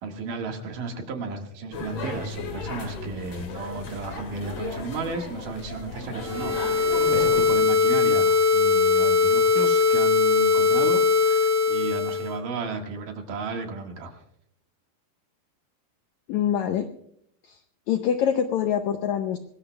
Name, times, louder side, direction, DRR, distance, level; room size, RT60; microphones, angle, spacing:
voice 1, 0.0-14.2, right 4 dB, 65° right, 3 dB, 3.3 m, -34 dB
sound 1, 1.7-7.5, left 3 dB, 45° left, 3.1 m, -35 dB
sound 2, 6.2-12.3, left 5 dB, 85° right, 4.1 m, -20 dB
voice 2, 16.3-16.9 17.9-19.4, left 9 dB, 85° left, 8 dB, 1.6 m, -24 dB
25.0 x 20.0 x 2.3 m, 0.71 s
omnidirectional pair, 4.2 m